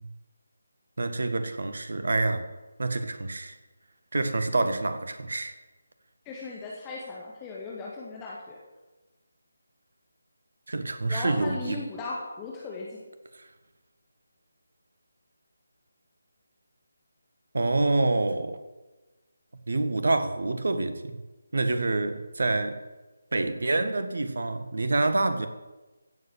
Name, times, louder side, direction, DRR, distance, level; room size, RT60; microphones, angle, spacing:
voice 1, 1.0-2.4 2.8-3.6 4.1-5.5 10.7-11.8 17.5-18.6 19.7-21.2 21.5-22.8 23.3-25.5, right 2 dB, 55° right, 9 dB, 1.6 m, -27 dB
voice 2, 6.3-8.6 11.1-13.0, left 3 dB, 15° left, -4 dB, 2.0 m, -37 dB
15.5 x 8.1 x 7.7 m, 1.2 s
figure-of-eight pair, 155°, 0 cm